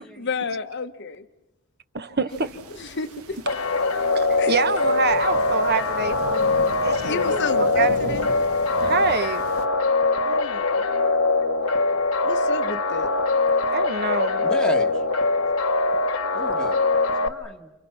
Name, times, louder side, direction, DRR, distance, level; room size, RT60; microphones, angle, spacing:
voice 1, 0.2-1.2 2.7-3.4 4.4-4.6 7.0-8.3 10.2-10.8 12.2-13.1, left 4 dB, 50° left, 1.2 m, -31 dB
voice 2, 1.9-2.6 4.1-8.3 8.8-9.4 13.7-14.5, right 4 dB, 45° right, 1.4 m, -26 dB
sound 1, 2.3-9.7, right 2 dB, 80° right, 1.8 m, -40 dB
sound 2, 3.5-17.3, left 3 dB, 75° left, 1.4 m, -22 dB
voice 3, 14.4-15.0 16.3-16.8 17.0-17.7, left 1 dB, 5° left, 1.4 m, -34 dB
29.5 x 29.5 x 5.9 m
head